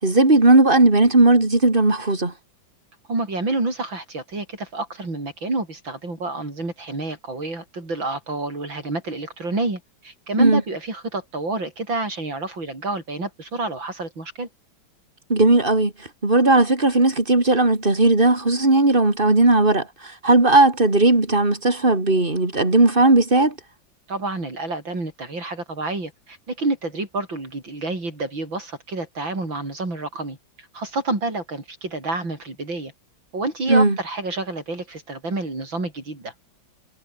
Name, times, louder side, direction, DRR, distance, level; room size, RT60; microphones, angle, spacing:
voice 1, 0.0-2.3 10.4-10.6 15.3-15.9 16.2-19.9 20.2-23.5 33.7-34.0, right 2 dB, 25° right, 4.1 m, -16 dB
voice 2, 3.1-14.5 24.1-32.9 33.3-36.3, right 2 dB, 80° right, 7.6 m, -28 dB
omnidirectional pair, 2.1 m